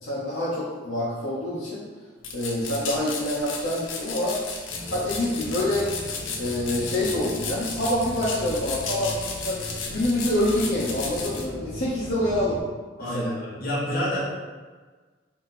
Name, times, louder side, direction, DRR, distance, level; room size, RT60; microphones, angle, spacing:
voice 1, 0.0-1.8 2.3-4.4 4.9-5.9 6.3-9.1 9.4-12.6 13.0-13.4, left 1 dB, 65° left, -9 dB, 1.0 m, -26 dB
sound 1, 2.2-11.5, left 4 dB, 85° left, 0.6 m, -34 dB
sound 2, 4.7-12.6, left 1 dB, 5° right, 0.9 m, -38 dB
voice 2, 13.0-14.2, left 1 dB, 50° left, -7 dB, 1.3 m, -28 dB
4.3 x 2.8 x 3.7 m, 1.4 s
head